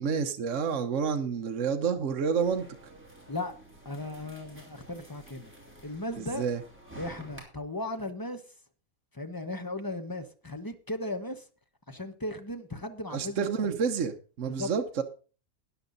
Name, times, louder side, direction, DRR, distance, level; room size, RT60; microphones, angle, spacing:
voice 1, 0.0-2.7 6.2-6.6 13.1-15.0, right 6 dB, 55° right, 1.3 m, -29 dB
sound 1, 2.4-7.4, right 1 dB, 10° right, 3.5 m, -50 dB
voice 2, 3.8-5.5 5.8-6.5 7.0-8.4 9.1-11.5 11.9-13.7 14.5-14.7, left 1 dB, 15° left, 1.0 m, -36 dB
13.0 x 10.0 x 4.0 m
omnidirectional pair, 1.6 m